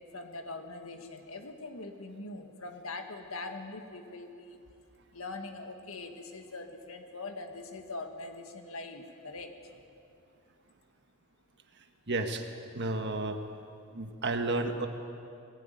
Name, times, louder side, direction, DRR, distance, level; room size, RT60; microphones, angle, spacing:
voice 1, 0.0-4.6 5.1-9.5, left 2 dB, 70° left, 5 dB, 1.9 m, -42 dB
voice 2, 12.1-12.4 12.7-13.4 13.9-14.9, right 2 dB, 55° right, 6 dB, 1.5 m, -31 dB
19.5 x 15.5 x 9.3 m, 2.5 s
head